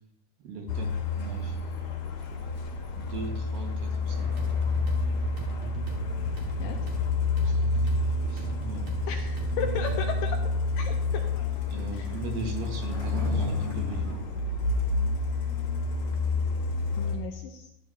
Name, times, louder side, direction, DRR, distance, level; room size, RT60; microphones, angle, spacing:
voice 1, 0.4-0.9 1.2-1.6 2.9-4.3 7.4-8.0 8.3-8.8 11.7-14.2, right 3 dB, 65° right, 1 dB, 3.0 m, -38 dB
Truck, 0.7-17.2, left 3 dB, 55° left, 2.1 m, -29 dB
sound 1, 4.1-10.1, equal, 50° right, 2.8 m, -38 dB
voice 2, 9.1-10.4 10.8-11.3 11.9-12.1 17.0-17.7, left 7 dB, 80° left, 4 dB, 2.1 m, -34 dB
Skateboard, 10.1-15.4, left 2 dB, 20° right, 2.9 m, -44 dB
13.0 x 11.0 x 2.8 m, 0.83 s
omnidirectional pair, 4.5 m